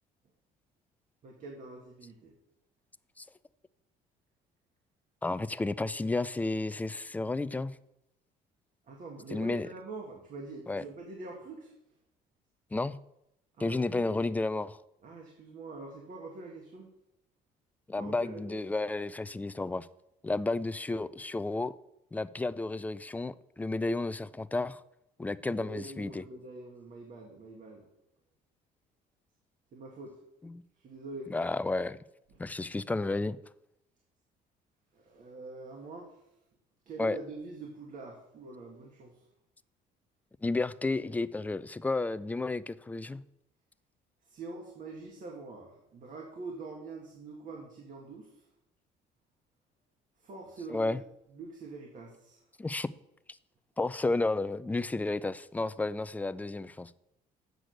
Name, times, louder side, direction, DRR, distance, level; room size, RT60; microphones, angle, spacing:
voice 1, 1.2-2.3 8.9-11.7 13.6-14.2 15.0-16.9 18.0-18.6 25.5-27.9 29.7-30.2 30.8-31.4 34.9-36.2 36.9-39.3 44.3-48.4 50.2-51.0 51.3-52.4, right 3 dB, 50° right, 1.8 m, -44 dB
voice 2, 5.2-7.7 9.3-9.7 10.7-10.8 12.7-13.0 13.6-14.8 17.9-19.9 20.2-21.8 22.1-24.8 25.2-26.2 30.4-30.6 31.3-32.0 32.4-33.4 37.0-37.2 40.4-43.2 50.7-51.0 52.6-52.9 53.8-56.9, left 2 dB, 10° left, 0.3 m, -32 dB
8.0 x 6.2 x 6.5 m
cardioid pair, 110°, 17 cm